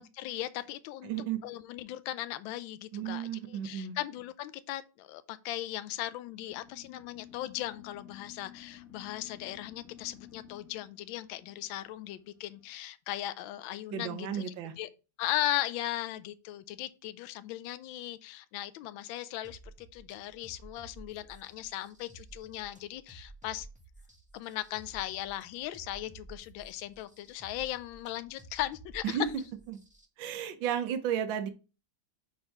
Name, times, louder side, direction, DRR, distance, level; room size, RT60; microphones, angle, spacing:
voice 1, 0.0-1.1 1.4-14.9 15.2-23.7 24.3-29.2, left 14 dB, 85° left, 1.3 m, -38 dB
voice 2, 1.0-1.4 2.9-4.0 13.9-14.7 29.0-29.3 29.7-29.8 30.2-31.5, right 9 dB, 75° right, 1.6 m, -33 dB
sound 1, 6.5-12.7, left 10 dB, 40° left, 1.7 m, -53 dB
sound 2, 19.4-30.1, right 2 dB, 5° right, 0.8 m, -53 dB
5.3 x 4.2 x 5.8 m
omnidirectional pair, 2.1 m